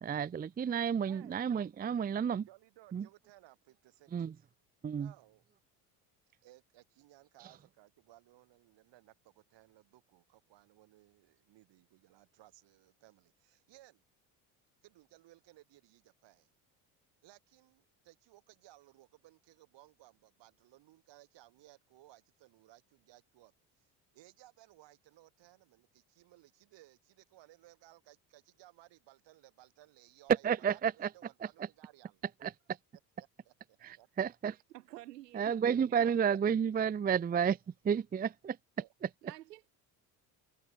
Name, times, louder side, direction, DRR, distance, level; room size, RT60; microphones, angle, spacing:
voice 1, 0.0-2.5 2.9-3.1 4.1-4.3 4.8-5.1 30.4-31.1 31.6-31.7 32.4-32.5 33.8-34.6 35.3-37.6 37.8-38.6 39.0-39.1, right 7 dB, 20° right, 0.5 m, -31 dB
voice 2, 1.1-1.4 2.5-4.1 4.9-5.4 6.4-14.0 14.8-16.5 17.2-23.5 23.8-32.2 33.2-34.1 36.0-36.4 38.8-38.9, right 16 dB, 65° right, 4.9 m, -61 dB
voice 3, 34.7-35.6 35.8-36.2 39.2-39.7, right 16 dB, 90° right, 1.5 m, -50 dB
hypercardioid pair, 70°, 47 cm